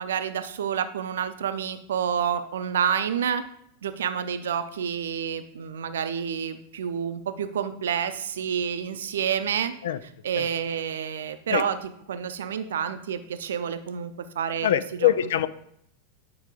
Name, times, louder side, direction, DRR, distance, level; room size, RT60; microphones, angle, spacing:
voice 1, 0.0-3.4 3.8-9.7 10.0-15.1, right 8 dB, 60° right, 10 dB, 0.6 m, -29 dB
voice 2, 14.6-15.5, left 11 dB, 60° left, 14 dB, 0.4 m, -23 dB
9.7 x 4.7 x 3.7 m, 0.72 s
figure-of-eight pair, 90°, 0 cm